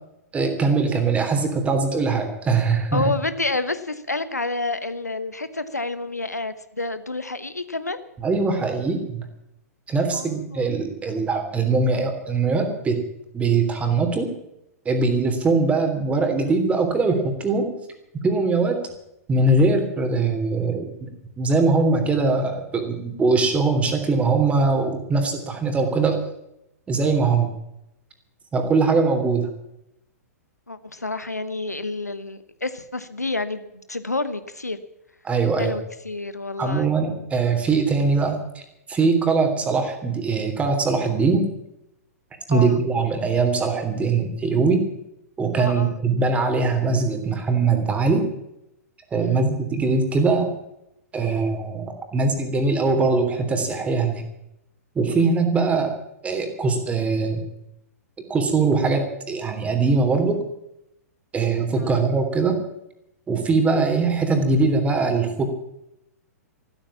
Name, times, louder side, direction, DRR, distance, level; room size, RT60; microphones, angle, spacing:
voice 1, 0.3-3.1 8.2-9.2 9.9-13.0 13.3-14.3 14.8-17.7 18.2-18.8 19.3-21.1 21.4-26.2 26.9-27.5 28.5-29.5 35.2-35.7 36.6-38.6 38.9-41.5 42.5-44.8 45.4-48.3 49.1-50.5 51.1-54.2 54.9-55.9 56.2-57.4 58.3-60.4 61.3-62.6 63.3-65.4, right 4 dB, 15° right, 5 dB, 3.3 m, -21 dB
voice 2, 2.9-8.0 10.1-10.7 30.7-34.8 35.6-36.9 42.5-42.8 45.6-45.9 49.2-49.5 61.7-62.0, left 2 dB, 85° left, 13 dB, 1.2 m, -29 dB
14.0 x 13.5 x 7.3 m, 0.84 s
figure-of-eight pair, 105°, 9 cm